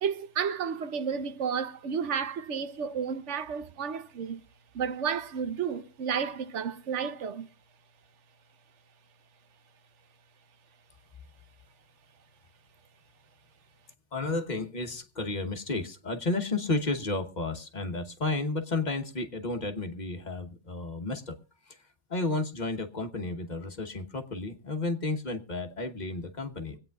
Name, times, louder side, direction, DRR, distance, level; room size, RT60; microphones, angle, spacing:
voice 1, 0.0-4.4 4.7-7.5, right 7 dB, 85° right, 1.1 m, -32 dB
voice 2, 14.1-21.3 21.7-21.8 22.1-26.8, left 3 dB, 40° left, 1.2 m, -32 dB
24.5 x 8.8 x 2.3 m
omnidirectional pair, 1.2 m